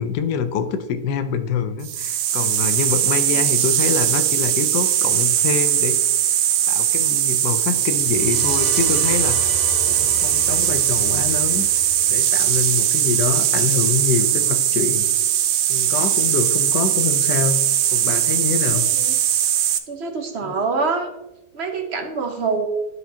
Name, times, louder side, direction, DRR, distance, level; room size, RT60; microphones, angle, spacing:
voice 1, 0.0-6.0 6.7-9.4 10.0-11.7 12.1-15.1 15.7-17.6 17.9-18.9 20.4-20.5, left 6 dB, 90° left, 9 dB, 1.3 m, -25 dB
sound 1, 1.8-19.8, right 11 dB, 80° right, 1.1 m, -20 dB
sound 2, 7.8-13.6, left 1 dB, 35° left, 1.4 m, -35 dB
voice 2, 18.7-19.1 19.9-21.1 21.5-22.7, right 4 dB, 45° right, 4 dB, 1.1 m, -25 dB
11.5 x 4.9 x 2.8 m, 0.92 s
omnidirectional pair, 1.7 m